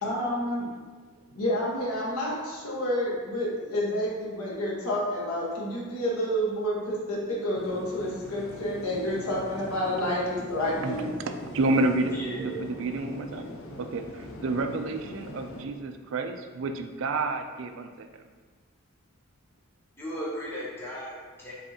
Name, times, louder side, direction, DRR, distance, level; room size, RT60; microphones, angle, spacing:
voice 1, 0.0-0.6 1.3-11.0, equal, 85° left, -5 dB, 1.2 m, -29 dB
sound 1, 7.5-15.6, left 1 dB, 65° left, 0.6 m, -42 dB
voice 2, 11.5-13.5 13.8-18.2, right 2 dB, 60° right, 7 dB, 0.4 m, -30 dB
voice 3, 12.1-12.7 13.2-13.4 13.8-14.2 20.0-21.5, equal, 10° left, -7 dB, 0.8 m, -37 dB
5.4 x 3.5 x 2.8 m, 1.5 s
head